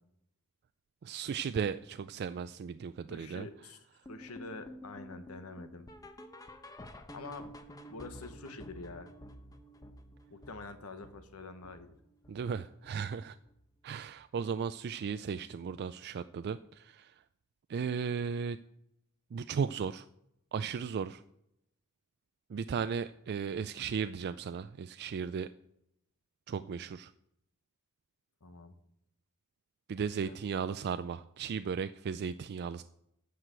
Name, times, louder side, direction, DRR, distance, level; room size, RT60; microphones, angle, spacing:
voice 1, 1.0-3.5 12.3-13.4 13.8-17.1 17.7-18.6 19.3-20.0 20.5-21.2 22.5-25.5 26.5-27.1 29.9-32.8, right 6 dB, 50° right, 11 dB, 0.3 m, -36 dB
voice 2, 3.1-5.9 7.1-7.6 7.9-9.1 10.3-12.0 28.4-28.8 30.2-30.4, left 3 dB, 90° left, 9 dB, 1.2 m, -46 dB
sound 1, 4.0-13.2 13.5-13.8 14.1-14.2 14.7-14.8 15.3-15.4, equal, 15° left, 0.9 m, -51 dB
13.5 x 4.8 x 7.8 m, 0.78 s
head